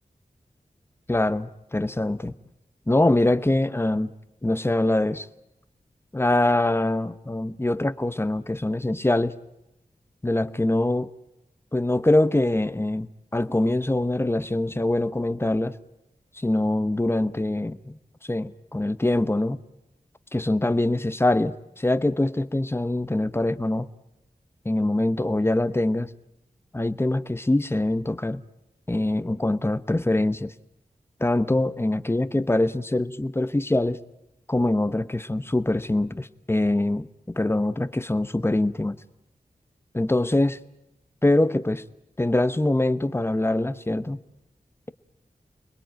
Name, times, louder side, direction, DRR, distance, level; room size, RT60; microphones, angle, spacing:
voice 1, 1.1-2.3 2.9-4.1 4.4-5.3 6.1-9.3 10.2-11.1 11.7-15.8 16.4-18.0 18.2-19.6 20.3-23.9 24.6-26.1 26.7-28.4 28.9-30.5 31.2-34.0 34.5-39.0 39.9-40.6 41.2-41.8 42.2-44.2, left 1 dB, 15° left, 14 dB, 1.0 m, -24 dB
29.0 x 21.0 x 9.2 m, 0.89 s
wide cardioid pair, 75°, 14 cm